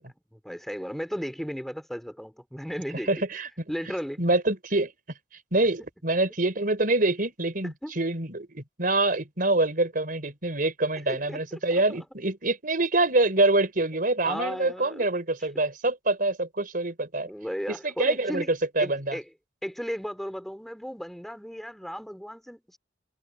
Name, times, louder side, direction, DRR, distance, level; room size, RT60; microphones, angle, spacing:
voice 1, 0.3-3.1 3.7-4.2 7.8-7.9 11.1-12.0 14.3-15.1 17.3-18.5 18.8-19.2 19.6-22.8, equal, ahead, 3.2 m, -35 dB
voice 2, 3.1-3.5 4.2-4.9 5.5-17.3 17.8-19.2, right 2 dB, 50° right, 4.4 m, -25 dB
head